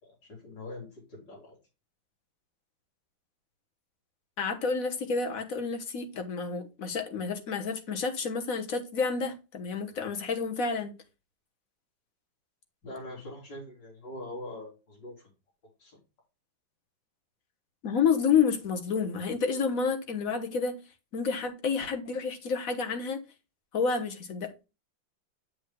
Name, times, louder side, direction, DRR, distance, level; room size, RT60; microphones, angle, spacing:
voice 1, 0.0-1.6 12.8-15.3 15.8-16.0, left 1 dB, 65° left, 4.2 m, -43 dB
voice 2, 4.4-10.9 17.8-20.8 21.1-23.2 23.7-24.7, left 5 dB, 50° left, 1.4 m, -29 dB
7.6 x 7.6 x 2.2 m
omnidirectional pair, 2.1 m